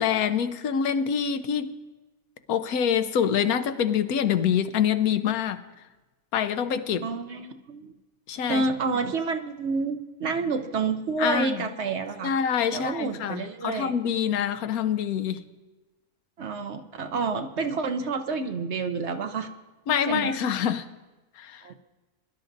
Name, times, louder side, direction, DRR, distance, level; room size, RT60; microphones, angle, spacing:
voice 1, 0.0-1.7 2.5-5.6 6.3-7.0 8.3-8.6 11.2-11.6 12.2-15.4 19.9-20.9 21.4-21.6, left 8 dB, 90° left, 11 dB, 1.2 m, -25 dB
voice 2, 7.0-7.9 8.5-12.3 12.7-13.9 16.4-19.5 20.1-20.4 21.6-21.8, right 4 dB, 60° right, 7 dB, 0.8 m, -29 dB
22.0 x 11.5 x 2.6 m, 1.1 s
omnidirectional pair, 1.5 m